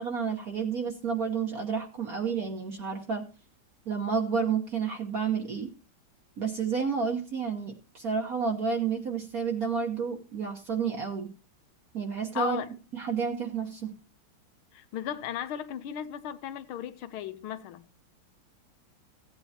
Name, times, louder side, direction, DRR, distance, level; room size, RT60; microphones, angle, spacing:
voice 1, 0.0-3.2 3.9-5.7 6.4-11.3 11.9-12.6 12.9-13.9, right 6 dB, 50° right, 1.4 m, -30 dB
voice 2, 12.3-12.7 14.7-17.9, left 10 dB, 85° left, 1.6 m, -36 dB
15.5 x 9.0 x 2.8 m
omnidirectional pair, 2.2 m